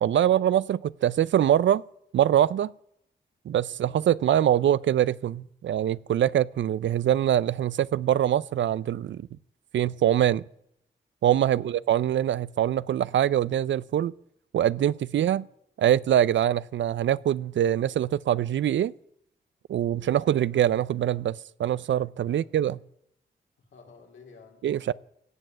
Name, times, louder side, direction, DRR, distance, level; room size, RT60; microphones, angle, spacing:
voice 1, 0.0-1.8 2.1-2.7 3.5-9.3 9.7-10.4 11.2-14.1 14.5-15.4 15.8-18.9 19.7-22.8 24.6-24.9, right 11 dB, 75° right, 0.5 m, -24 dB
voice 2, 3.7-4.0 11.5-11.8 15.2-15.4 19.9-20.4 22.3-22.5 23.6-24.7, left 5 dB, 80° left, 3.8 m, -54 dB
17.0 x 7.4 x 7.8 m
supercardioid pair, 45°, 19 cm